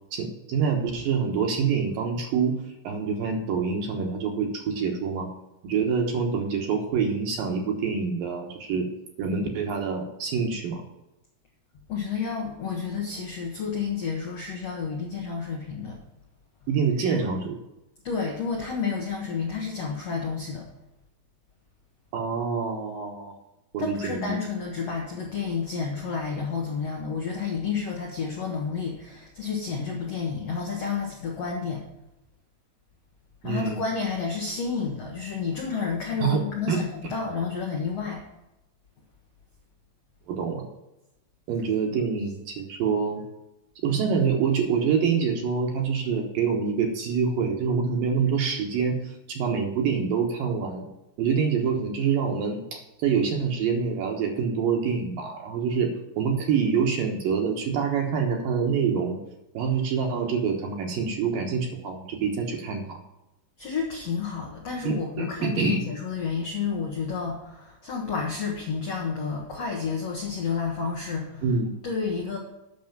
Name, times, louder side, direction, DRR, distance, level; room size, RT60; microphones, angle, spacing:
voice 1, 0.1-2.6 2.8-5.3 5.6-8.9 9.2-10.8 16.7-17.5 22.1-23.3 23.7-24.4 33.4-33.8 36.2-37.1 40.3-40.6 41.5-43.2 43.8-50.9 51.2-59.2 59.5-63.0 64.8-65.8 71.4-71.7, right 6 dB, 65° right, 2 dB, 2.5 m, -26 dB
voice 2, 11.9-16.0 17.0-17.2 18.0-20.6 23.8-31.8 33.4-38.2 63.6-71.4 71.8-72.4, left 5 dB, 70° left, 0 dB, 1.5 m, -30 dB
9.3 x 6.3 x 7.2 m, 0.93 s
omnidirectional pair, 5.0 m